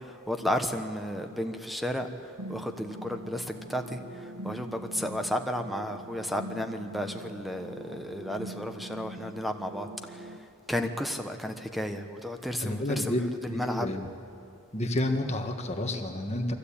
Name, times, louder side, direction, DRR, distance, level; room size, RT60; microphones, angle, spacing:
voice 1, 0.0-2.1 2.5-10.3 10.7-13.1 13.4-13.9, equal, ahead, 6 dB, 1.1 m, -33 dB
sound 1, 2.4-10.4, right 1 dB, 85° right, 1.1 m, -43 dB
voice 2, 12.6-13.2 13.5-14.1 14.7-16.5, left 1 dB, 30° left, 3 dB, 1.5 m, -30 dB
23.5 x 15.0 x 8.6 m, 2.6 s
head